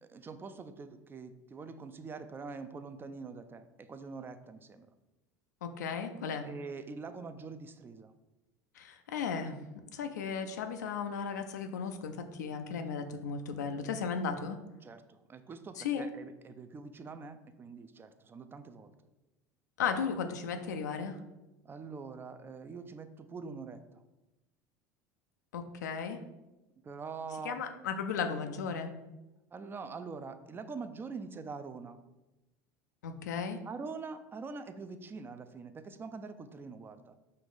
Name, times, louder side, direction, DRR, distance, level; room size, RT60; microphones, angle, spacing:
voice 1, 0.0-4.9 6.4-8.1 14.8-18.9 21.6-24.0 26.8-27.6 29.5-32.0 33.6-37.1, right 4 dB, 25° right, 10 dB, 0.4 m, -44 dB
voice 2, 5.6-6.5 8.8-9.6 9.9-14.6 15.8-16.1 19.8-21.2 25.5-26.2 27.4-28.9 33.0-33.6, left 6 dB, 85° left, 7 dB, 0.4 m, -35 dB
5.3 x 2.4 x 3.9 m, 1.0 s
hypercardioid pair, 85°, 9 cm